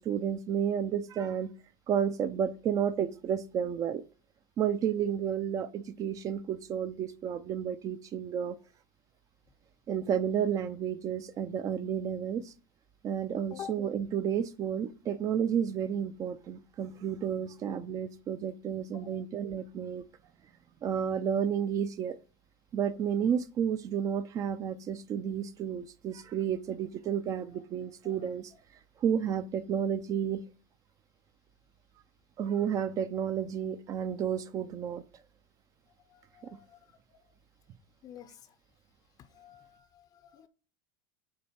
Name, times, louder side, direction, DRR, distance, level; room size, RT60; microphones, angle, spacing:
voice 1, 0.0-1.5 1.9-4.0 4.6-8.6 9.9-12.5 13.0-20.0 20.8-22.2 22.7-28.5 29.0-30.4 32.4-35.0 36.4-36.6, right 8 dB, 30° right, 0.4 m, -31 dB
voice 2, 39.3-39.8 40.2-40.5, left 10 dB, 30° left, 0.6 m, -45 dB
8.7 x 3.1 x 5.7 m
supercardioid pair, 150°, 12 cm